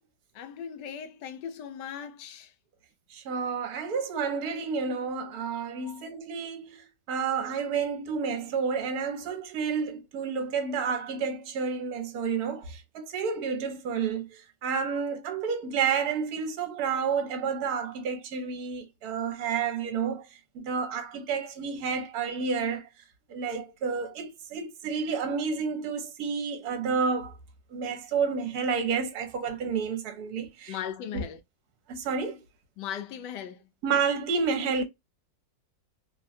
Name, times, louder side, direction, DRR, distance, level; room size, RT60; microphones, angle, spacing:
voice 1, 0.3-2.5 5.8-6.1 30.7-31.4 32.8-33.6, left 9 dB, 75° left, 1.2 m, -38 dB
voice 2, 3.1-20.3 20.5-22.9 23.3-27.4 27.7-30.8 31.1-31.2 31.9-32.4 33.8-34.8, right 5 dB, 65° right, 1.3 m, -30 dB
3.2 x 2.3 x 2.5 m
omnidirectional pair, 1.9 m